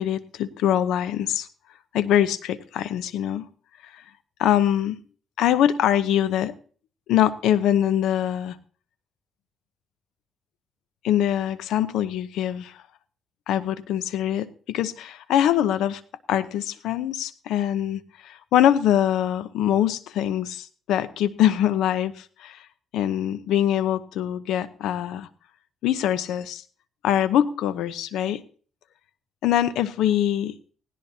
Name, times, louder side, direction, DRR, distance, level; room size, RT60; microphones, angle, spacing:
voice 1, 0.0-1.5 1.9-3.5 4.4-5.0 5.4-6.5 7.1-8.6 11.0-12.7 13.5-16.0 16.3-22.6 22.9-25.3 25.8-26.6 27.0-28.4 29.4-30.6, left 11 dB, 85° left, 13 dB, 0.9 m, -23 dB
18.0 x 17.5 x 2.9 m, 0.43 s
cardioid pair, 90°, 0 cm